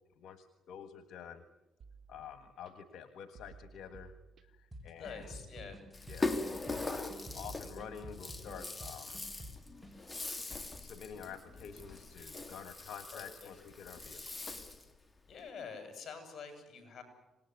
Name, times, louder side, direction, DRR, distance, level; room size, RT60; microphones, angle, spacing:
voice 1, 0.2-1.4 2.1-4.2 4.6-5.4 6.1-7.0 7.3-9.2 10.8-14.5, left 7 dB, 80° left, 10 dB, 1.5 m, -49 dB
sound 1, 1.8-2.7 3.4-4.7 5.1-6.1 6.8-8.7, right 5 dB, 60° right, 1.8 m, -56 dB
sound 2, 4.7-9.9, equal, 5° right, 5.3 m, -50 dB
voice 2, 4.9-5.8 13.1-13.5 15.3-17.0, left 5 dB, 55° left, 7 dB, 7.6 m, -47 dB
Rattle (instrument), 5.9-14.9, left 3 dB, 20° left, 2.8 m, -41 dB
26.0 x 20.0 x 9.5 m, 1.0 s
cardioid pair, 90°, 0 cm